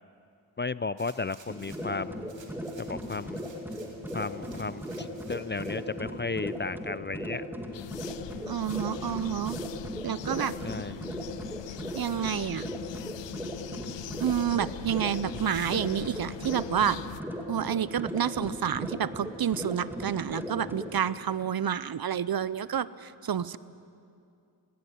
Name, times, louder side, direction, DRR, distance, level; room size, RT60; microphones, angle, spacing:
voice 1, 0.6-2.2 2.8-3.4 4.1-7.4 10.6-10.9, left 4 dB, 25° left, 16 dB, 0.4 m, -34 dB
sound 1, 1.0-1.9 2.3-5.8 6.3-6.4, right 4 dB, 80° right, 3.1 m, -55 dB
Tekno sound, 1.5-20.9, equal, 5° right, 2.6 m, -38 dB
sound 2, 7.7-17.2, left 12 dB, 75° left, 0.5 m, -42 dB
voice 2, 8.5-9.6 10.0-10.5 11.9-12.7 14.2-17.0 17.5-23.6, right 9 dB, 55° right, 17 dB, 0.7 m, -29 dB
18.5 x 18.0 x 9.4 m, 2.5 s
cardioid pair, 55°, 44 cm